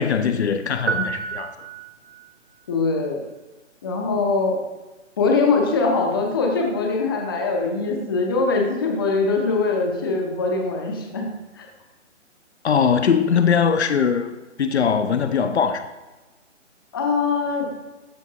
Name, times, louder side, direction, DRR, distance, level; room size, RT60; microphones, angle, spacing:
voice 1, 0.0-1.6 12.6-15.9, left 6 dB, 60° left, 9 dB, 0.7 m, -21 dB
sound 1, 0.9-2.3, right 6 dB, 65° right, 1.1 m, -29 dB
voice 2, 2.7-3.2 3.8-4.6 5.2-11.3 11.5-11.7 16.9-17.7, left 4 dB, 20° left, 1 dB, 0.6 m, -22 dB
13.0 x 4.5 x 2.8 m, 1.1 s
hypercardioid pair, 160°, 37 cm